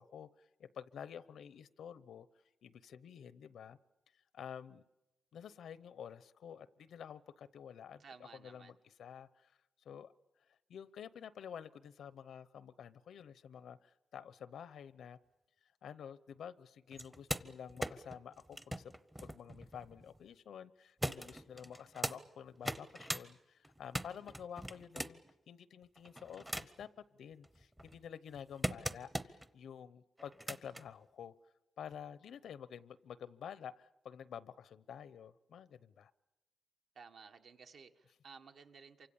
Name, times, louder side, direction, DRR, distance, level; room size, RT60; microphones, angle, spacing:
voice 1, 0.0-2.3 2.6-3.8 4.3-4.8 5.3-9.5 9.8-10.1 10.7-15.2 15.8-18.9 19.2-31.3 31.8-36.1, left 8 dB, 80° left, 17 dB, 0.8 m, -50 dB
voice 2, 8.0-8.7 36.9-39.1, right 5 dB, 60° right, 6 dB, 1.6 m, -56 dB
sound 1, 16.9-20.2 21.0-22.2 22.6-23.2 23.6-25.3 26.0-26.9 27.4-29.5 30.2-30.8 31.9-32.0, equal, 5° right, 0.8 m, -41 dB
28.0 x 25.0 x 7.1 m, 1.0 s
wide cardioid pair, 165°, 0 cm